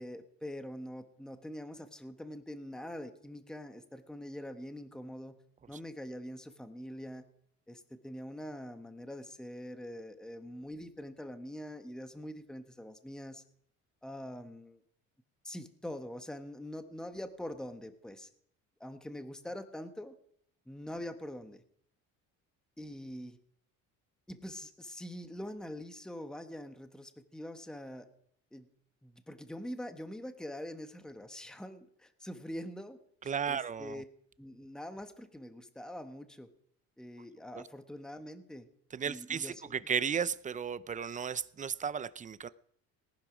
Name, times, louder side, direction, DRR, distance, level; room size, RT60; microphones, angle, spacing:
voice 1, 0.0-5.4 5.7-7.2 7.7-13.4 14.0-14.8 15.4-18.3 18.8-20.1 20.7-21.6 22.8-23.4 24.3-28.1 28.5-28.7 29.0-34.0 34.4-36.5 37.0-38.7 39.0-39.7, left 1 dB, ahead, 8 dB, 1.2 m, -44 dB
voice 2, 33.3-34.0 37.5-37.6 38.9-42.5, right 7 dB, 25° right, 17 dB, 0.6 m, -34 dB
19.0 x 11.0 x 5.0 m, 0.67 s
cardioid pair, 110°, 32 cm